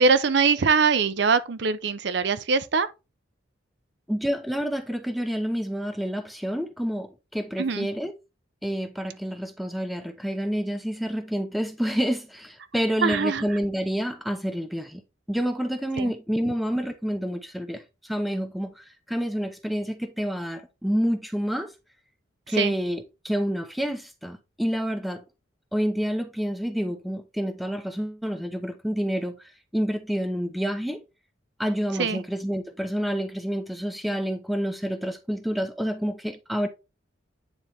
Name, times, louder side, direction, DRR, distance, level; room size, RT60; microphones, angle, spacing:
voice 1, 0.0-2.9 7.6-7.9 13.0-13.4 16.0-16.1 22.6-22.7 32.0-32.2, right 5 dB, 60° right, 0.6 m, -22 dB
voice 2, 4.1-8.1 8.6-15.0 15.3-21.7 22.5-25.2 25.7-29.4 29.7-31.0 31.6-36.7, equal, ahead, 0.7 m, -28 dB
9.7 x 4.0 x 3.4 m
head